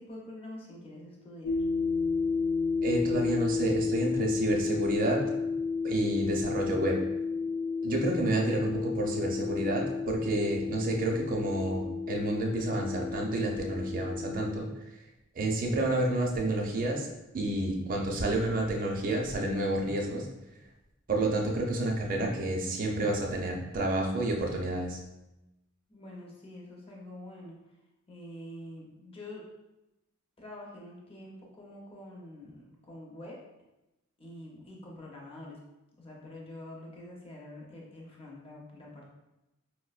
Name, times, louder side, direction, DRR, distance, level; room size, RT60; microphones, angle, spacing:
voice 1, 0.0-1.6 25.9-27.6 28.1-29.5 30.4-33.4 34.2-35.6 36.0-39.1, left 1 dB, 25° left, -3 dB, 0.6 m, -46 dB
sound 1, 1.4-14.6, left 4 dB, 75° left, 0.8 m, -32 dB
voice 2, 2.8-5.2 5.8-7.0 7.8-14.7 15.3-17.1 17.3-20.3 21.1-25.0, right 1 dB, 40° right, 0 dB, 0.5 m, -29 dB
4.6 x 2.1 x 2.4 m, 0.95 s
head